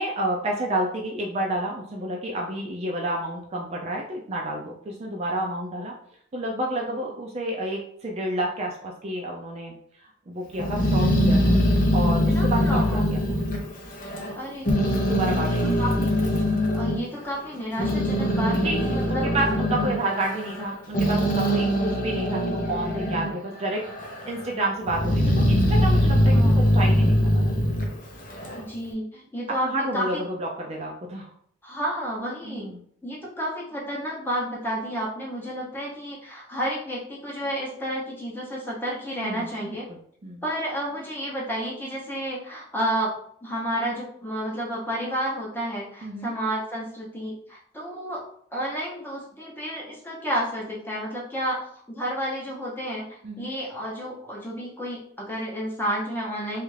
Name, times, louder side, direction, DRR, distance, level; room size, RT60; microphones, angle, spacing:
voice 1, 0.0-5.9 6.3-11.5 11.9-13.2 15.0-15.8 18.6-18.8 19.1-23.8 24.3-27.7 29.6-31.3 32.4-32.8 39.2-39.5 39.9-40.4 46.0-46.3 53.2-53.5, right 1 dB, 30° right, -1 dB, 0.4 m, -30 dB
Growling, 10.6-14.4 14.7-17.0 17.5-23.4 23.7-24.4 24.9-28.6, equal, 40° left, 0.5 m, -22 dB
voice 2, 12.1-13.2 14.3-14.7 15.4-16.1 16.7-19.4 26.3-26.7 28.5-30.2 31.6-32.7 33.0-39.9 40.4-43.1 43.4-48.2 48.5-51.6 51.9-56.6, equal, 10° left, -4 dB, 0.8 m, -31 dB
3.1 x 2.4 x 3.2 m, 0.64 s
head